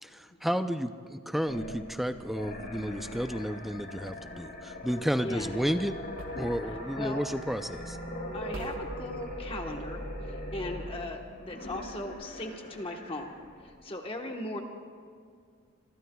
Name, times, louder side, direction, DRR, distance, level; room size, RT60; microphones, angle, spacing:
voice 1, 0.0-6.0 6.4-8.0, equal, ahead, 9 dB, 0.4 m, -32 dB
sound 1, 1.5-13.7, equal, 45° left, 2.9 m, -41 dB
sound 2, 3.7-4.5 6.2-7.0 7.3-7.6 7.8-8.2 8.5-9.1, right 1 dB, 60° right, 1.3 m, -45 dB
voice 2, 8.3-13.3 13.6-14.6, left 2 dB, 25° left, 2 dB, 1.2 m, -38 dB
25.5 x 24.0 x 2.3 m, 2.2 s
head